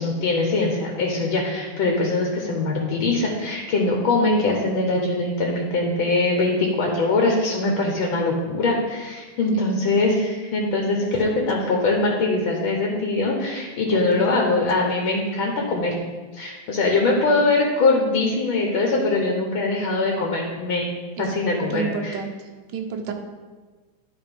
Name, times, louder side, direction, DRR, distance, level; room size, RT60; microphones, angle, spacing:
voice 1, 0.0-16.0 16.3-20.9 21.2-22.2, left 3 dB, 80° left, 0 dB, 1.8 m, -22 dB
voice 2, 11.0-11.3 13.9-14.6 17.2-17.5 21.2-21.3 21.7-22.3 22.7-23.1, right 6 dB, 70° right, 3 dB, 1.5 m, -31 dB
11.0 x 3.8 x 5.2 m, 1.3 s
omnidirectional pair, 2.2 m